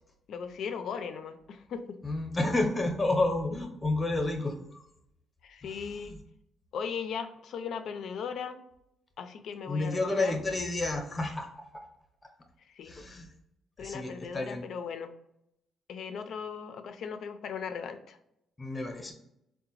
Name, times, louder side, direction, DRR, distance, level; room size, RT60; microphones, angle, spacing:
voice 1, 0.3-2.0 5.4-6.1 6.7-8.6 9.2-10.3 12.7-12.9 13.8-15.1 15.9-18.2, left 6 dB, 70° left, 8 dB, 0.4 m, -38 dB
voice 2, 2.0-4.8 5.6-6.2 9.7-11.8 12.8-13.3 13.8-14.6 18.6-19.1, left 2 dB, 25° left, 4 dB, 0.7 m, -31 dB
3.7 x 2.1 x 2.9 m, 0.79 s
cardioid pair, 90°, 0 cm